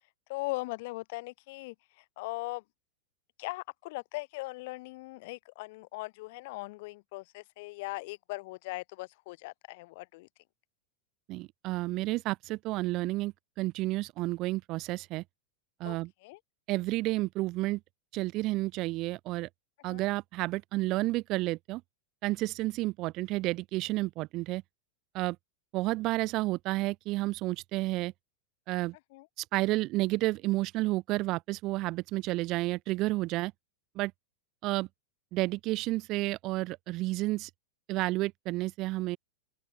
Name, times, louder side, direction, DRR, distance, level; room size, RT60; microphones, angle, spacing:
voice 1, 0.3-2.6 3.4-10.3 15.8-16.4 19.9-20.1 29.1-29.3, left 23 dB, 50° left, 5.2 m, -39 dB
voice 2, 11.3-15.2 15.8-16.1 16.7-17.8 18.1-19.5 19.8-21.8 22.2-24.6 25.1-25.4 25.7-28.1 28.7-29.0 29.4-33.5 34.0-34.1 34.6-34.9 35.3-37.5 37.9-39.2, right 19 dB, 40° right, 0.6 m, -31 dB
open air
figure-of-eight pair, 90°, 0 cm